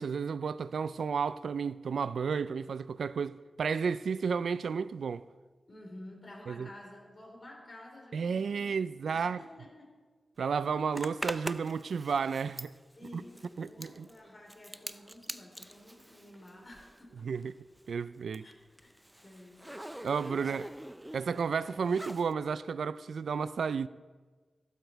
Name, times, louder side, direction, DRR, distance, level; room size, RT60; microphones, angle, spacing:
voice 1, 0.0-5.2 6.5-6.7 8.1-9.4 10.4-12.7 13.6-14.1 17.2-17.6 17.9-18.4 20.0-20.7 21.1-23.9, right 6 dB, 80° right, 0.3 m, -32 dB
voice 2, 5.7-10.0 13.0-17.3 18.4-18.5 18.8-19.0 19.2-20.1 20.4-20.6, left 1 dB, 35° left, 3.7 m, -51 dB
Zipper (clothing), 10.9-17.1 17.4-22.3, right 1 dB, 5° right, 0.5 m, -44 dB
15.0 x 12.0 x 4.6 m
wide cardioid pair, 100°, 0 cm